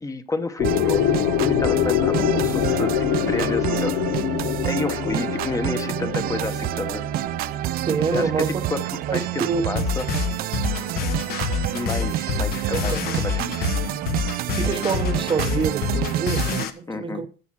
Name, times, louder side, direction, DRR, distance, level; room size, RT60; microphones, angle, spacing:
voice 1, 0.0-1.1 1.4-4.0 4.6-7.0 8.1-8.8 9.1-10.0 11.7-13.7 16.9-17.2, left 3 dB, 20° left, 1.0 m, -30 dB
sound 1, 0.6-8.4, left 12 dB, 85° left, 1.0 m, -24 dB
sound 2, 0.6-16.6, right 14 dB, 55° right, 0.4 m, -28 dB
voice 2, 7.9-8.6 9.1-9.8 12.7-13.0 14.5-17.3, right 5 dB, 30° right, 0.8 m, -26 dB
sound 3, 9.8-16.7, left 6 dB, 60° left, 1.3 m, -27 dB
10.5 x 7.1 x 6.0 m
cardioid pair, 130°, 18 cm